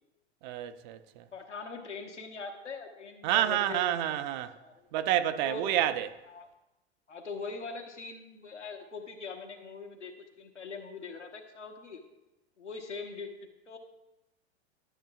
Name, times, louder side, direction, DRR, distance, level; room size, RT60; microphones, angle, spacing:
voice 1, 0.4-1.3 3.2-4.5 4.9-6.1, right 12 dB, 40° right, 0.5 m, -29 dB
voice 2, 1.3-4.2 4.6-4.9 5.4-5.9 6.3-6.5 7.1-12.0 12.6-13.8, left 4 dB, 90° left, 1.2 m, -42 dB
12.0 x 6.6 x 2.4 m
figure-of-eight pair, 95°, 35 cm